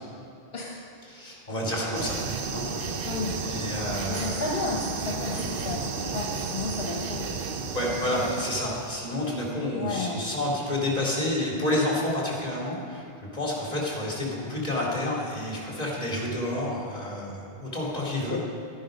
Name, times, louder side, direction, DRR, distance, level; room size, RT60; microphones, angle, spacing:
voice 1, 1.1-2.2 2.5-2.6 3.4-4.4 5.3-5.7 7.7-13.0 13.3-18.4, left 1 dB, 40° left, -3 dB, 2.9 m, -29 dB
sound 1, 1.9-9.0, right 5 dB, 60° right, 0.9 m, -33 dB
voice 2, 3.0-3.3 4.1-7.3 7.9-8.0 9.7-10.3 18.3-18.4, left 3 dB, 70° left, -2 dB, 1.3 m, -32 dB
12.0 x 10.5 x 5.1 m, 2.6 s
omnidirectional pair, 1.1 m